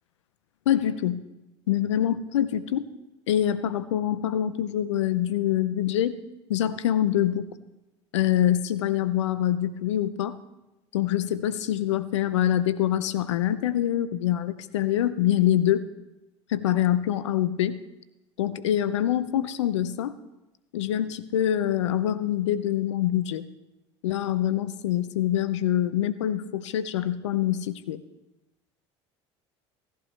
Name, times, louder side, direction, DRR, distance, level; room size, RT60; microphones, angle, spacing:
voice 1, 0.7-1.2 1.7-2.9 3.3-6.2 6.5-7.5 8.1-10.4 10.9-15.9 16.5-17.8 18.4-20.1 20.7-23.5 24.0-28.0, left 11 dB, 85° left, 14 dB, 0.6 m, -25 dB
17.5 x 11.5 x 3.3 m, 0.96 s
hypercardioid pair, 70°, 15 cm